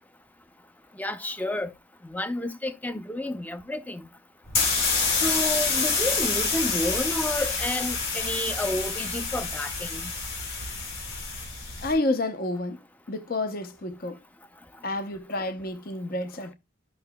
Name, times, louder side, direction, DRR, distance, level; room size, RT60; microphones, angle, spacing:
voice 1, 1.0-1.7 2.1-4.1 5.2-10.1, left 1 dB, 10° left, 0.6 m, -30 dB
sound 1, 4.5-11.9, left 4 dB, 75° left, 3.6 m, -27 dB
voice 2, 11.8-12.8 13.1-14.2 14.8-16.5, left 2 dB, 45° left, 0.8 m, -29 dB
13.0 x 5.8 x 2.2 m
head